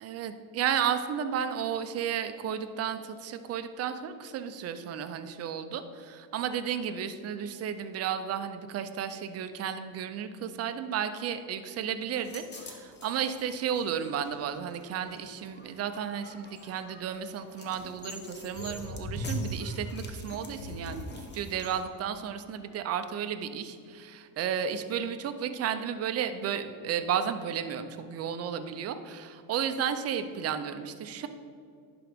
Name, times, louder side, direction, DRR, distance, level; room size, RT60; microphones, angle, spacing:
voice 1, 0.0-31.3, right 8 dB, 35° right, 9 dB, 0.4 m, -33 dB
sound 1, 12.1-21.8, equal, 20° left, 0.8 m, -41 dB
11.0 x 3.8 x 3.5 m, 2.4 s
cardioid pair, 115°, 48 cm